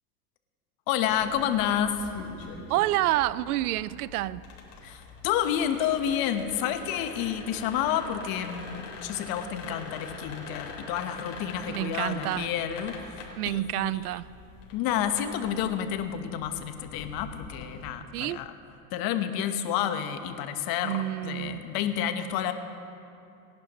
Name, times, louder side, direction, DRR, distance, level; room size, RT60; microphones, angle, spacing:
voice 1, 0.9-2.0 4.8-12.9 13.5-13.9 14.7-18.5 18.9-21.0 21.2-22.5, left 10 dB, 50° left, 8 dB, 1.3 m, -29 dB
sound 1, 1.0-17.9, left 3 dB, 75° left, 4.2 m, -44 dB
voice 2, 2.7-4.4 11.7-12.5 13.4-14.2 18.1-18.4 20.8-21.6, right 15 dB, 80° right, 19 dB, 0.6 m, -28 dB
29.0 x 11.5 x 3.1 m, 2.7 s
hypercardioid pair, 100°, 45 cm